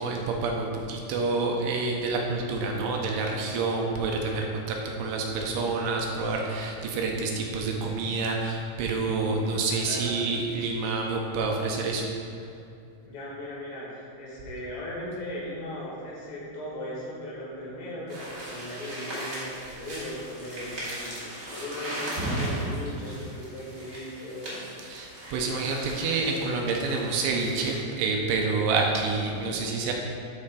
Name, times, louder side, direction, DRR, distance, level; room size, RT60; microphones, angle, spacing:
voice 1, 0.0-12.1 24.8-29.9, right 3 dB, 80° right, 0 dB, 2.7 m, -28 dB
voice 2, 9.8-10.2 13.1-24.6, left 1 dB, 75° left, -6 dB, 4.2 m, -38 dB
sound 1, 18.1-27.8, right 1 dB, 65° right, 0.8 m, -37 dB
13.0 x 4.4 x 3.8 m, 2.5 s
omnidirectional pair, 5.3 m